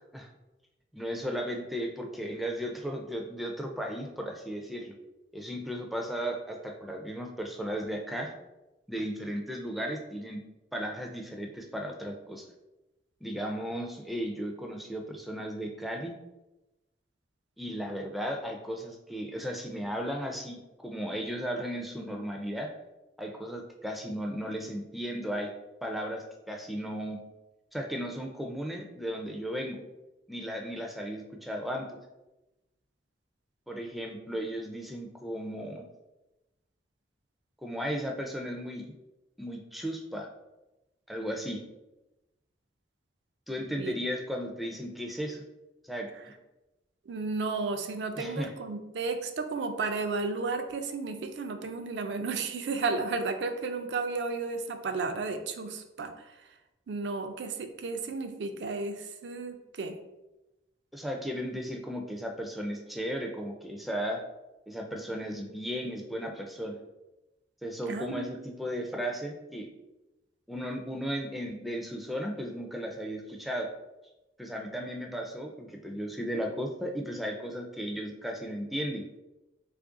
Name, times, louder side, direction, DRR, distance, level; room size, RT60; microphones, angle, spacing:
voice 1, 0.9-4.9 5.3-8.3 8.9-10.4 10.7-12.5 13.2-16.1 17.6-22.7 23.2-25.5 25.8-27.2 27.7-29.8 30.3-31.9 33.7-35.9 37.6-38.9 39.4-40.3 41.1-41.6 43.5-45.4 45.8-46.1 48.2-48.5 60.9-64.2 64.7-66.8 67.6-69.7 70.5-73.7 74.4-79.1, equal, ahead, 1 dB, 0.4 m, -35 dB
voice 2, 47.1-56.5 56.9-60.0 67.9-68.3, right 3 dB, 80° right, 7 dB, 0.4 m, -33 dB
3.2 x 2.5 x 3.6 m, 1.0 s
head